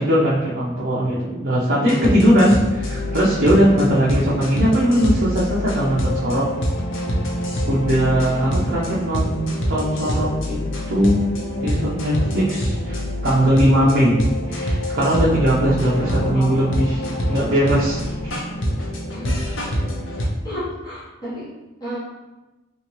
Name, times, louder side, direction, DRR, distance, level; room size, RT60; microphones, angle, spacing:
voice 1, 0.0-6.5 7.7-9.4 9.7-10.6 10.9-11.3 11.6-14.2 14.5-17.0 17.3-18.4, equal, 50° right, -8 dB, 0.6 m, -19 dB
sound 1, 1.8-20.2, equal, 60° left, 0.6 m, -25 dB
voice 2, 15.9-16.7 19.1-19.4 20.4-21.5 21.8-22.0, left 1 dB, 15° left, -11 dB, 0.9 m, -32 dB
3.3 x 2.8 x 2.9 m, 1.1 s
head